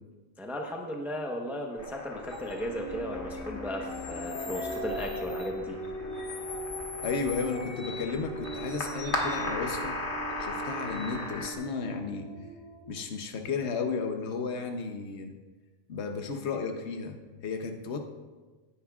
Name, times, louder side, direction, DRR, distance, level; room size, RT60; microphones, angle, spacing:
voice 1, 0.4-5.8, equal, ahead, 0 dB, 0.9 m, -36 dB
sound 1, 1.8-11.5, left 2 dB, 45° left, 1.7 m, -37 dB
sound 2, 2.9-12.9, right 1 dB, 50° right, 2.3 m, -41 dB
voice 2, 7.0-10.0 10.4-12.3 12.9-15.3 15.9-18.0, left 5 dB, 70° left, 5 dB, 1.2 m, -33 dB
17.0 x 10.0 x 2.4 m, 1.3 s
omnidirectional pair, 1.2 m